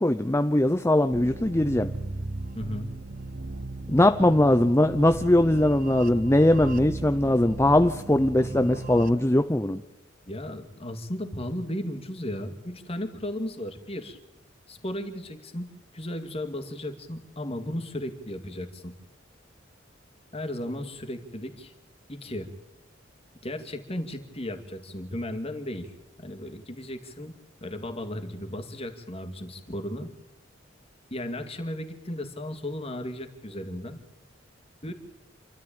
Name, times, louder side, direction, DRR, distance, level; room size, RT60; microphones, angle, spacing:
voice 1, 0.0-1.9 3.9-9.8, left 1 dB, 15° left, 9 dB, 0.7 m, -21 dB
sound 1, 1.1-9.1, right 2 dB, 45° right, 1.1 m, -37 dB
voice 2, 2.5-2.9 10.3-14.2 14.7-18.9 20.3-21.7 22.1-22.5 23.4-25.9 26.2-27.3 27.6-30.1 31.1-34.0 34.8-34.9, left 1 dB, 30° left, 7 dB, 2.4 m, -35 dB
28.0 x 13.5 x 8.9 m, 0.92 s
head